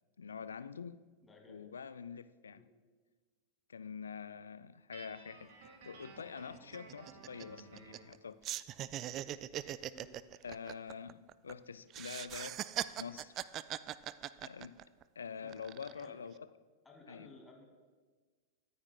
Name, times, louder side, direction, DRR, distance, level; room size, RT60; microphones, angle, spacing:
voice 1, 0.2-1.0 1.5-2.7 3.7-5.5 5.8-8.4 10.4-12.7 13.0-13.3 14.4-14.9 15.2-16.5 17.1-17.3, left 6 dB, 70° left, 0.4 m, -46 dB
voice 2, 1.2-1.7 2.5-2.7 9.9-10.2 15.4-15.5 15.9-16.2 16.8-17.6, left 3 dB, 10° left, 2.2 m, -57 dB
Guitar, 4.9-8.2, right 4 dB, 55° right, 1.8 m, -55 dB
sound 1, 5.6-5.7 6.0-6.2 6.5-8.2 8.4-11.5 11.9-15.0 15.5-16.1, right 13 dB, 35° right, 0.3 m, -41 dB
22.5 x 9.5 x 2.3 m
figure-of-eight pair, 90°, 0 cm